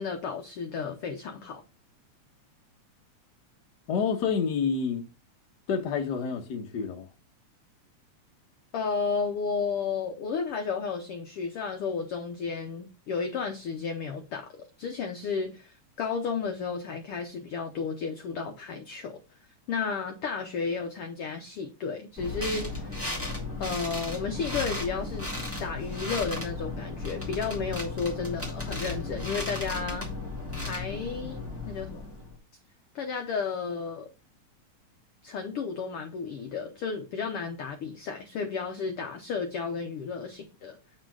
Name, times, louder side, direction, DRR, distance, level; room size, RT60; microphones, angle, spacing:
voice 1, 0.0-1.6 8.7-14.5 14.8-19.2 19.7-23.0 23.6-25.3 25.6-30.1 30.6-32.1 32.9-34.1 35.2-40.8, left 5 dB, 65° left, 1.5 m, -33 dB
voice 2, 3.9-5.0 5.7-7.1, left 6 dB, 50° left, 1.3 m, -28 dB
sound 1, 22.2-32.4, left 2 dB, 5° right, 1.8 m, -35 dB
8.8 x 4.4 x 4.8 m
omnidirectional pair, 3.4 m